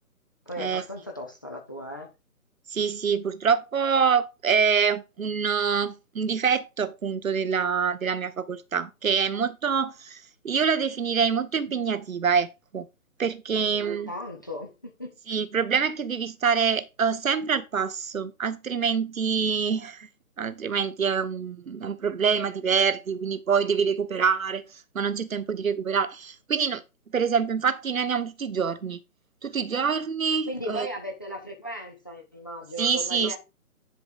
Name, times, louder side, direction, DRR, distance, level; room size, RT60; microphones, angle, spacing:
voice 1, 0.5-2.1 13.5-15.2 30.5-33.4, equal, 15° left, 0.6 m, -37 dB
voice 2, 2.7-12.9 13.2-14.1 15.3-20.1 20.4-26.8 27.1-29.0 29.4-30.9 32.8-33.4, right 6 dB, 60° right, 1.1 m, -26 dB
10.5 x 4.6 x 3.9 m
figure-of-eight pair, 145°, 45 cm